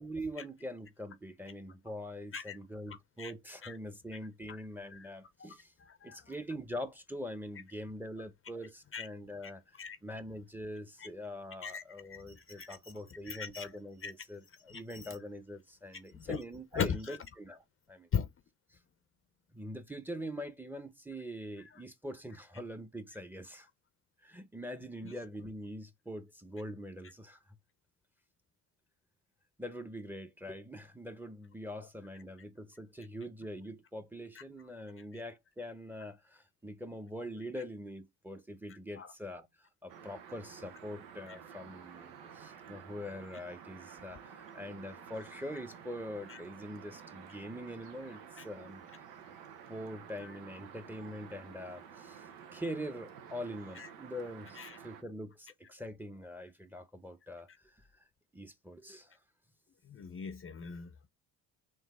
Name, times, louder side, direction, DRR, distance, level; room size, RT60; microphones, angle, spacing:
voice 1, 0.0-5.7 6.0-9.6 10.0-18.1 18.7-18.8 19.5-23.7 24.2-27.4 29.6-48.8 49.7-57.8 58.3-59.2, equal, 5° right, 0.8 m, -43 dB
voice 2, 5.8-6.2 8.9-9.1 9.8-10.0 11.0-11.1 11.6-11.8 12.1-12.7 13.3-13.7 14.0-14.1 14.7-15.0 16.1-16.4 16.8-17.2 18.1-18.3 39.0-39.1 41.3-41.4 46.3-46.4 48.4-48.5 53.8-53.9 54.6-54.8 59.9-61.1, left 7 dB, 35° left, 0.6 m, -38 dB
sound 1, 39.9-55.0, right 7 dB, 85° right, 0.9 m, -51 dB
4.0 x 2.7 x 3.5 m
supercardioid pair, 75°, 37 cm